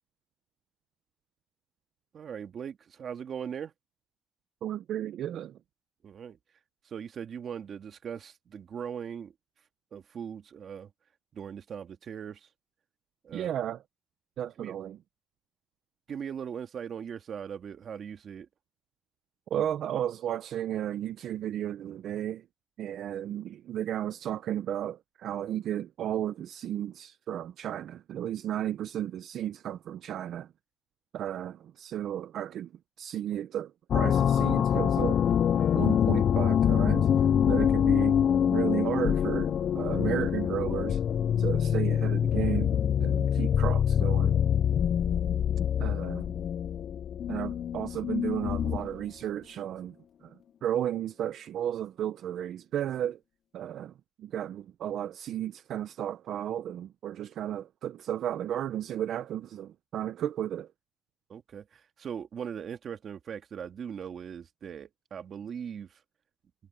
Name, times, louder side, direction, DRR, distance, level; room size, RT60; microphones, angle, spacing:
voice 1, 2.1-3.7 6.0-6.4 6.8-9.3 9.9-10.9 11.3-12.5 13.2-13.5 14.6-14.8 16.1-18.5 61.3-66.0, right 7 dB, 55° right, 2.1 m, -39 dB
voice 2, 4.6-5.6 13.3-13.8 14.4-15.0 19.5-22.4 22.8-30.5 31.1-32.7 33.0-35.2 35.7-37.1 37.5-38.2 38.5-44.3 45.8-46.3 47.3-50.0 50.2-53.2 53.5-60.7, right 11 dB, 75° right, 0.7 m, -33 dB
sound 1, 33.9-49.0, left 9 dB, 60° left, 0.3 m, -25 dB
cardioid pair, 90°, 0 cm